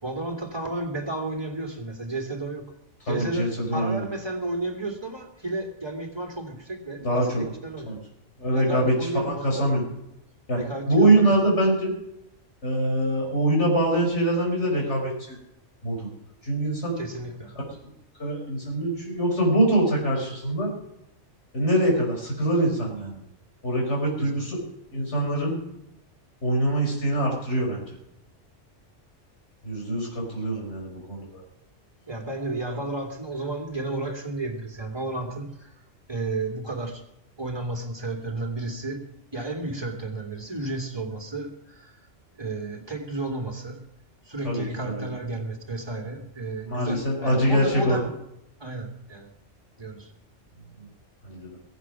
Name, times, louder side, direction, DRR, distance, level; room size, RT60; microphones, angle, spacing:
voice 1, 0.0-2.7 3.0-8.0 8.5-9.4 10.5-10.9 11.2-11.4 17.0-17.5 24.2-24.5 32.1-35.7 36.1-37.0 37.4-39.0 39.3-41.9 42.4-43.8 44.2-48.1 48.6-49.3 49.8-50.1, right 2 dB, 20° right, 2 dB, 2.8 m, -32 dB
voice 2, 3.1-4.0 7.0-7.4 7.9-8.0 8.4-9.8 10.5-10.6 10.9-11.9 12.6-15.4 15.8-16.1 16.4-17.0 18.2-20.7 21.5-23.2 23.6-24.6 24.9-25.6 26.4-27.8 29.6-31.4 44.4-45.0 46.7-48.0 50.8-50.9 51.2-51.6, right 1 dB, 65° left, 0 dB, 5.7 m, -24 dB
22.0 x 8.3 x 6.1 m, 0.85 s
omnidirectional pair, 1.3 m